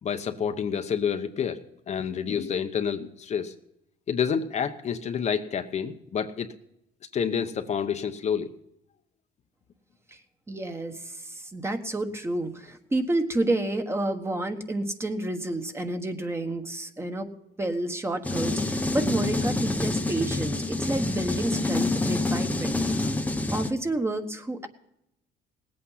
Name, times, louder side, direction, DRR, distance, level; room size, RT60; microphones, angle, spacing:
voice 1, 0.0-1.6 1.9-3.5 4.1-6.5 7.1-8.5, left 7 dB, 40° left, 7 dB, 0.9 m, -28 dB
voice 2, 10.5-17.3 17.6-23.1 23.5-24.7, right 2 dB, 15° right, 6 dB, 1.3 m, -30 dB
sound 1, 18.2-23.7, left 2 dB, 10° left, 0.8 m, -27 dB
18.5 x 8.7 x 5.6 m, 0.82 s
cardioid pair, 110°, 17 cm